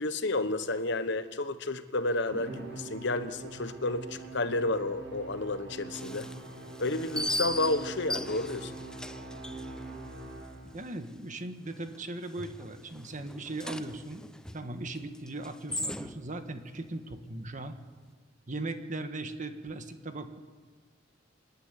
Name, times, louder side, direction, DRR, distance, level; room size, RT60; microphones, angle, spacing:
voice 1, 0.0-6.3 6.8-8.7, left 2 dB, 65° left, 11 dB, 1.2 m, -31 dB
Musical instrument, 2.3-10.9, right 2 dB, 70° right, 6.5 m, -43 dB
sound 1, 5.9-10.8 11.1-11.2 11.7-12.1 12.4-16.4, left 1 dB, 5° left, 0.7 m, -39 dB
voice 2, 10.7-14.2 14.5-17.7 18.5-20.4, right 2 dB, 40° right, 8 dB, 1.5 m, -38 dB
26.0 x 11.5 x 9.8 m, 1.5 s
head